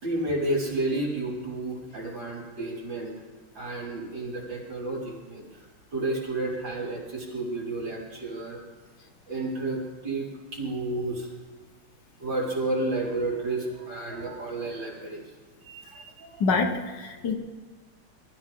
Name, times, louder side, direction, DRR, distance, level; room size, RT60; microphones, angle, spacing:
voice 1, 0.0-3.1 3.6-5.4 5.9-8.6 9.3-11.3 12.2-15.2 15.7-16.4 16.9-17.0, right 2 dB, 60° right, -5 dB, 5.4 m, -31 dB
voice 2, 16.4-17.4, left 4 dB, 60° left, 6 dB, 1.8 m, -26 dB
23.0 x 13.5 x 3.7 m, 1.4 s
omnidirectional pair, 2.3 m